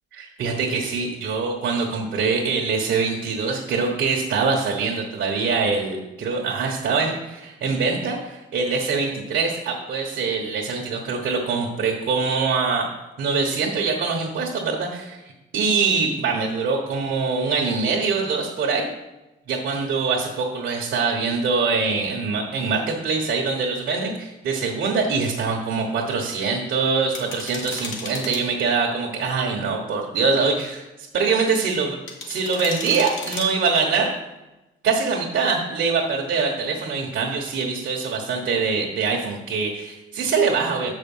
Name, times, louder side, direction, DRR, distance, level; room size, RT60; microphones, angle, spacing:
voice 1, 0.2-12.9 13.2-18.9 19.5-32.0 32.3-34.1 34.8-40.9, right 4 dB, 70° right, -1 dB, 1.3 m, -24 dB
sound 1, 27.1-28.4 32.1-33.5, left 4 dB, 75° left, 1.6 m, -34 dB
6.7 x 5.5 x 5.5 m, 1.0 s
cardioid pair, 90°, 20 cm